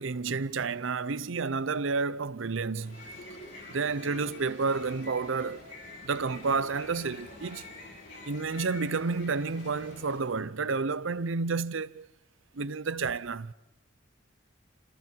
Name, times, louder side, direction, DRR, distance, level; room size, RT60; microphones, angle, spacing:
voice 1, 0.0-3.0 3.7-5.6 6.0-7.6 8.3-12.1 12.6-13.5, right 4 dB, 75° right, 0.7 m, -30 dB
sound 1, 2.7-10.3, left 2 dB, 60° left, 6.5 m, -47 dB
30.0 x 27.5 x 4.6 m
head